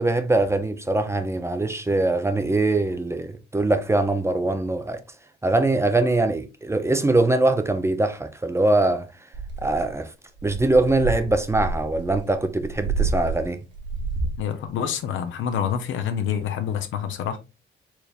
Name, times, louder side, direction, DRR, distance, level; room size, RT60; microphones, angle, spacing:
voice 1, 0.0-5.0 5.4-9.1 9.6-10.1 10.4-13.6, right 2 dB, 15° right, 0.5 m, -22 dB
sound 1, 9.3-9.9 10.4-14.5, right 4 dB, 65° right, 1.1 m, -29 dB
voice 2, 14.4-17.4, left 8 dB, 75° left, 0.8 m, -27 dB
4.5 x 3.4 x 2.4 m
cardioid pair, 90°, 20 cm